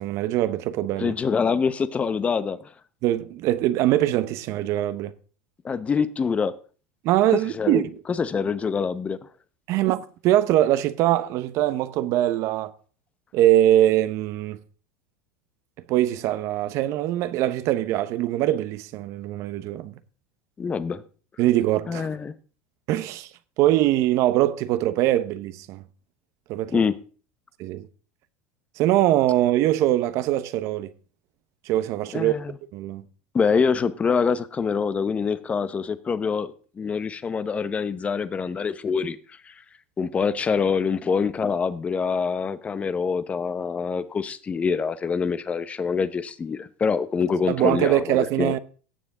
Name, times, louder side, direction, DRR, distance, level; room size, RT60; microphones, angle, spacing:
voice 1, 0.0-1.1 3.0-5.1 7.0-8.0 9.7-12.7 13.3-14.6 15.9-19.9 21.4-22.1 22.9-23.3 23.6-25.8 26.5-26.8 27.6-27.9 28.8-30.9 31.7-32.3 32.7-33.0 47.5-48.6, right 14 dB, 50° right, 0.8 m, -22 dB
voice 2, 1.0-2.7 5.6-6.5 7.5-9.2 20.6-21.0 21.9-22.3 26.7-27.0 32.1-32.6 33.3-39.6 40.0-48.6, left 5 dB, 20° left, 0.8 m, -25 dB
16.5 x 7.0 x 3.7 m
supercardioid pair, 125°, 6 cm